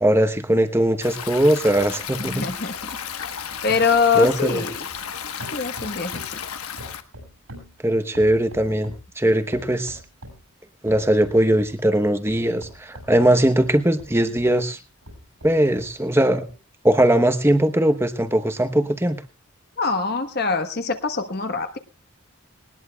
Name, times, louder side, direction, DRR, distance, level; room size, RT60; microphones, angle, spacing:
voice 1, 0.0-2.4 4.1-4.6 7.8-8.9 9.2-10.0 10.8-14.8 15.4-16.4 16.8-19.2, right 1 dB, 10° right, 9 dB, 0.9 m, -20 dB
Stream, 1.0-7.0, left 8 dB, 90° left, 1.2 m, -33 dB
voice 2, 2.2-2.8 3.6-4.9 5.5-6.2 19.8-21.8, left 5 dB, 45° left, 8 dB, 1.2 m, -23 dB
sound 1, 2.8-5.1 5.4-6.4 6.8-9.1 9.5-10.5 10.9-11.8 12.3-14.6 15.0-16.0 16.5-16.6, equal, 80° right, 7.0 m, -43 dB
19.5 x 19.5 x 2.3 m, 0.32 s
head